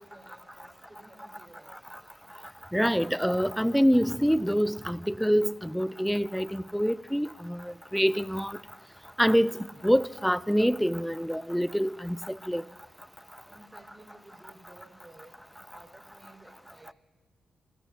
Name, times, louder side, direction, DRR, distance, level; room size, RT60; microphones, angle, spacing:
voice 1, 0.0-1.8 13.4-15.4 15.7-16.9, right 1 dB, 20° right, 4.8 m, -54 dB
voice 2, 2.7-8.6 9.2-9.5 9.8-12.6, equal, ahead, 0.4 m, -26 dB
24.5 x 13.0 x 2.8 m
supercardioid pair, 50°, 0 cm